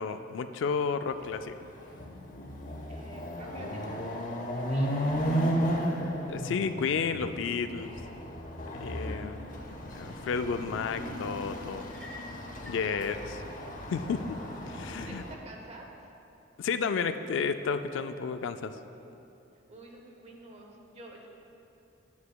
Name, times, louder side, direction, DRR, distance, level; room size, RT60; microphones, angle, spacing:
voice 1, 0.0-1.6 6.3-8.0 8.7-9.4 9.9-11.9 12.6-13.4 13.9-14.4 14.7-15.2 16.6-18.7, left 5 dB, 70° left, 10 dB, 0.3 m, -32 dB
Chatter / Car passing by / Motorcycle, 1.3-1.4 1.8-15.3, equal, 45° left, 0.7 m, -34 dB
voice 2, 2.9-5.8 6.0-6.1 8.9-9.9 12.8-13.2 15.0-15.9 19.7-21.3, right 2 dB, 35° right, 1 dB, 0.9 m, -50 dB
sound 1, 11.8-12.9, left 2 dB, 5° left, 1.0 m, -48 dB
9.5 x 9.3 x 2.3 m, 2.8 s
head